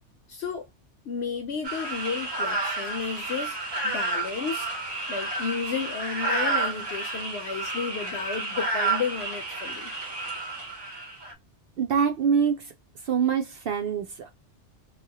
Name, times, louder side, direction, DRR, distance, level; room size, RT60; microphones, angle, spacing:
voice 1, 0.3-0.7 1.1-3.6 3.8-4.7 5.1-9.9, left 6 dB, 70° left, 0.9 m, -32 dB
sound 1, 1.6-11.3, right 2 dB, 25° right, 0.7 m, -30 dB
voice 2, 11.8-12.7 13.0-14.3, right 7 dB, 65° right, 0.7 m, -25 dB
2.8 x 2.3 x 2.7 m
omnidirectional pair, 1.2 m